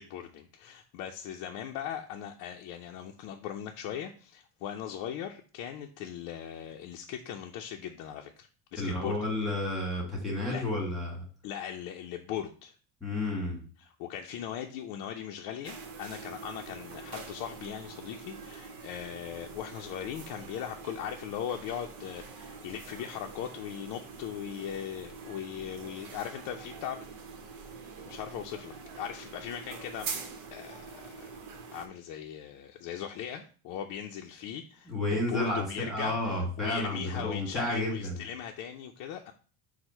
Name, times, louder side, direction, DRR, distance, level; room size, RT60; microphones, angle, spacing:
voice 1, 0.0-9.3 10.5-10.6 11.4-12.7 14.0-27.0 28.1-30.1 30.5-31.4 31.7-39.3, left 9 dB, 60° left, 3 dB, 0.5 m, -39 dB
voice 2, 8.8-11.2 13.0-13.6 34.9-38.2, left 1 dB, ahead, -2 dB, 1.6 m, -31 dB
sound 1, 15.6-31.9, right 5 dB, 75° right, 0.9 m, -45 dB
4.4 x 2.1 x 4.2 m, 0.40 s
supercardioid pair, 125°, 36 cm